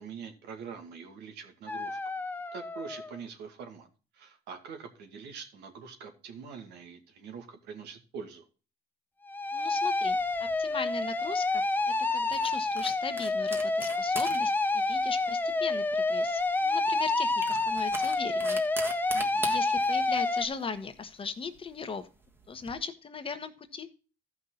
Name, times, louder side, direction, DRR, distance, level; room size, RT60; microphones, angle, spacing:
voice 1, 0.0-2.0 2.5-3.9 4.1-8.4 19.1-19.6, right 6 dB, 80° right, 5 dB, 2.2 m, -44 dB
sound 1, 1.7-3.1 9.3-20.5, left 3 dB, 10° left, 0.7 m, -28 dB
voice 2, 9.5-10.2 10.6-11.6 12.1-18.6 19.4-22.1 22.5-23.9, left 5 dB, 30° left, 8 dB, 1.2 m, -38 dB
sound 2, 10.1-22.7, right 2 dB, 15° right, 1.5 m, -44 dB
13.5 x 5.9 x 3.8 m, 0.34 s
cardioid pair, 110°, 17 cm